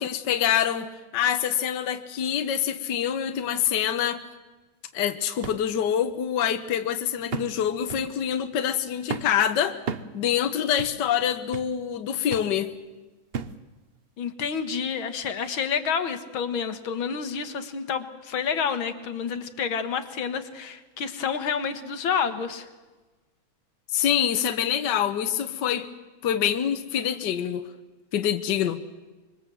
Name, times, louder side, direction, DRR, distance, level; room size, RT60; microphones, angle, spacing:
voice 1, 0.0-4.2 4.9-9.8 10.1-12.7 23.9-25.9 26.2-27.6 28.1-28.8, left 9 dB, 60° left, 8 dB, 1.6 m, -25 dB
sound 1, 5.4-5.6 6.1-6.2 7.3-7.6 7.9-8.1 9.1-9.4 9.9-10.1 10.8-11.0 11.5-11.8 12.3-12.5 13.3-13.6 14.3-14.4, right 6 dB, 45° right, 0.8 m, -34 dB
voice 2, 14.2-22.7, left 6 dB, 80° left, 9 dB, 2.2 m, -29 dB
25.5 x 23.5 x 7.7 m, 1.2 s
omnidirectional pair, 2.2 m